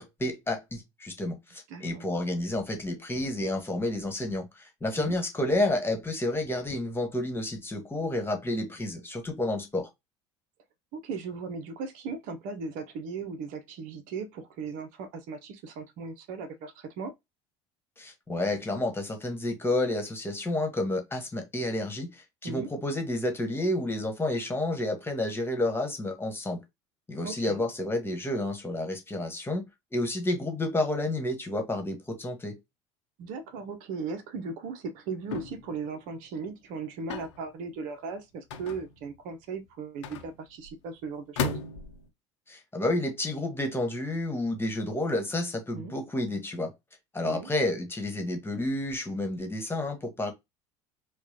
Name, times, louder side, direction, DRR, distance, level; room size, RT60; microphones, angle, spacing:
voice 1, 0.0-9.9 18.0-26.6 27.1-29.6 29.9-32.6 42.5-46.7 47.1-50.3, left 1 dB, 15° left, 1.4 m, -30 dB
voice 2, 1.7-2.1 5.0-5.2 10.9-17.1 22.4-22.7 27.2-27.6 33.2-41.6 45.7-45.9 47.2-47.5, right 5 dB, 65° right, 0.8 m, -37 dB
sound 1, 35.3-35.7 37.1-37.4 38.5-39.1 40.0-40.7 41.4-42.1, left 5 dB, 80° left, 0.8 m, -34 dB
4.6 x 2.3 x 2.8 m
hypercardioid pair, 75°, 15 cm